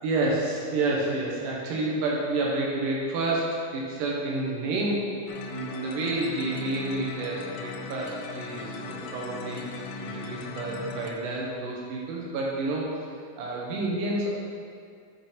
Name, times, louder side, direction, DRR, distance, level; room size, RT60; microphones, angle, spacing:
voice 1, 0.0-5.1 5.4-9.6 10.0-12.9 13.4-14.4, right 2 dB, 70° right, -3 dB, 2.6 m, -29 dB
sound 1, 5.3-11.1, left 4 dB, 80° left, 2.1 m, -38 dB
9.8 x 4.0 x 4.3 m, 2.2 s
omnidirectional pair, 3.9 m